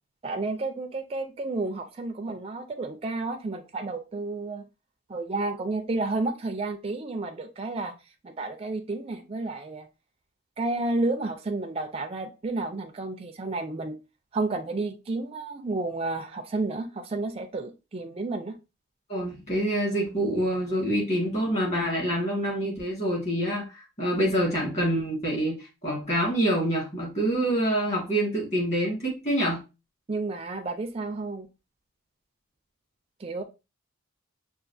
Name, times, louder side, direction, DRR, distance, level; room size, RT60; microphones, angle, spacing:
voice 1, 0.2-4.7 5.1-7.9 8.2-9.9 10.6-14.0 14.3-18.5 30.1-31.5 33.2-33.4, right 2 dB, 30° right, 0.4 m, -31 dB
voice 2, 19.1-29.6, right 1 dB, 30° left, 1.7 m, -26 dB
5.7 x 2.4 x 2.6 m
head